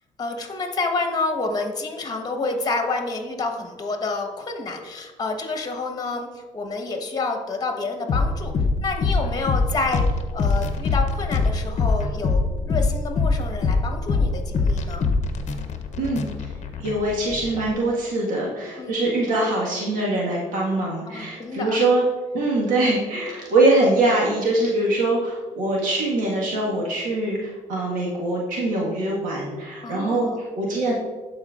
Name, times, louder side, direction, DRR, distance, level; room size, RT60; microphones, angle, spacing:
voice 1, 0.2-8.5 8.8-15.1 18.8-19.0 21.1-21.9 26.5-26.7 29.8-30.4, left 3 dB, 30° left, 4 dB, 1.3 m, -29 dB
sound 1, 8.1-17.7, left 4 dB, 55° left, 0.7 m, -23 dB
voice 2, 16.8-22.0 22.3-30.9, right 2 dB, 75° right, -4 dB, 1.6 m, -23 dB
12.0 x 4.4 x 2.5 m, 1.3 s
cardioid pair, 85°, 14 cm